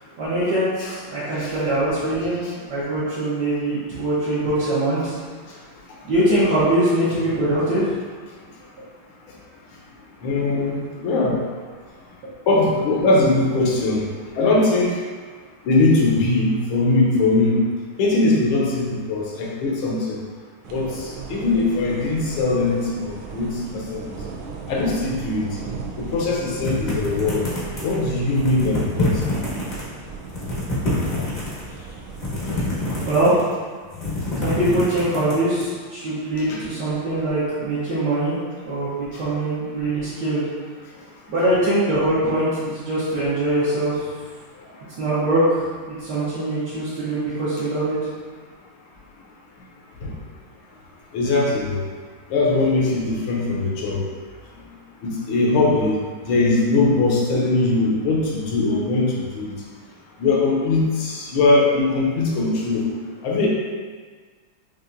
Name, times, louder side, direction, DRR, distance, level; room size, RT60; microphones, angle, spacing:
voice 1, 0.2-2.4 2.7-5.2 6.0-7.9 33.0-33.5 34.4-38.4 38.6-40.4 41.3-44.1 45.0-48.0, right 1 dB, 60° right, -12 dB, 1.5 m, -22 dB
voice 2, 10.2-11.3 12.5-14.0 14.4-14.9 15.7-17.6 18.0-20.2 20.7-24.0 24.7-25.5 26.0-27.4 27.8-29.1 36.5-36.6 50.0-50.1 51.1-51.8 52.3-54.0 55.0-55.9 56.3-59.5 60.2-62.9 63.2-63.5, left 2 dB, 80° left, -2 dB, 1.6 m, -20 dB
sound 1, 20.6-33.2, right 5 dB, 90° right, 1.5 m, -37 dB
sound 2, 26.6-28.0 28.4-29.8 30.2-31.6 32.1-33.5 33.8-35.7, left 2 dB, 40° left, 0.6 m, -26 dB
5.6 x 2.5 x 2.5 m, 1.5 s
omnidirectional pair, 2.3 m